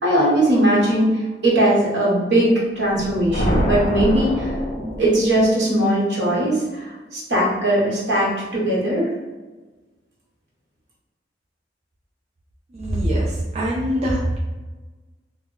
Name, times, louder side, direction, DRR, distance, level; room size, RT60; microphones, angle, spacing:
voice 1, 0.0-1.1 1.4-4.5 5.0-9.1, right 1 dB, 70° right, -5 dB, 1.0 m, -19 dB
sound 1, 2.9-5.5, equal, 35° left, 0.4 m, -25 dB
voice 2, 12.7-14.4, equal, 35° right, -5 dB, 0.4 m, -23 dB
2.1 x 2.0 x 3.6 m, 1.2 s
head